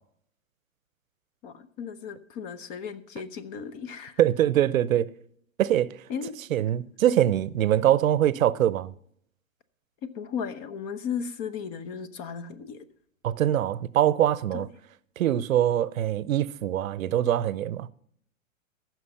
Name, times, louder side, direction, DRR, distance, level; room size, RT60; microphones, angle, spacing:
voice 1, 1.4-4.2 6.1-6.4 10.0-12.8 14.5-14.6, left 7 dB, 35° left, 0.9 m, -35 dB
voice 2, 4.2-5.1 5.6-5.9 6.5-8.9 13.2-14.7 15.2-17.9, right 11 dB, 80° right, 0.7 m, -23 dB
14.5 x 6.2 x 5.5 m
hypercardioid pair, 130°, 40 cm